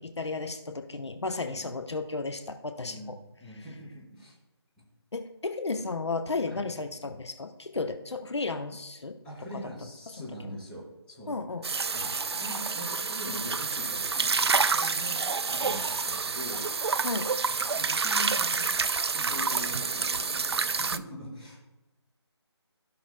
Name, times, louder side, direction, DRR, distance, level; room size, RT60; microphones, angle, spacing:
voice 1, 0.0-3.2 5.1-9.2 10.2-10.3 11.3-11.6 17.0-17.3, left 3 dB, 75° left, 7 dB, 0.8 m, -33 dB
voice 2, 1.4-1.7 2.8-4.4 4.8-4.9 6.4-6.6 9.2-11.3 11.9-16.7 17.7-18.7 19.1-21.6, equal, 5° left, -10 dB, 3.0 m, -42 dB
sound 1, 11.6-21.0, right 4 dB, 65° right, 0.4 m, -28 dB
16.0 x 5.9 x 2.3 m, 1.0 s
figure-of-eight pair, 160°, 14 cm